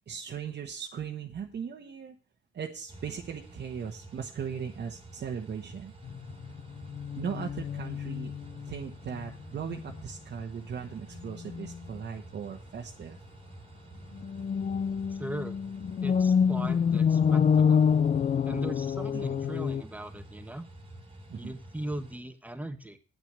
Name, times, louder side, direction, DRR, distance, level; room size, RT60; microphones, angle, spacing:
voice 1, 0.1-2.1 2.5-5.9 7.2-8.3 8.6-13.2 19.1-19.3 21.3-21.5, right 7 dB, 55° right, 1 dB, 1.2 m, -38 dB
sound 1, 2.9-22.2, right 1 dB, 25° right, 2.0 m, -49 dB
sound 2, 6.0-8.9 9.1-9.3 9.7-10.0 11.4-11.8 14.1-19.8, left 7 dB, 40° left, 0.5 m, -27 dB
voice 2, 15.1-15.6 16.0-17.9 18.4-20.6 21.3-23.0, right 1 dB, 5° right, 8 dB, 1.3 m, -39 dB
9.0 x 6.1 x 8.1 m, 0.39 s
cardioid pair, 95°, 21 cm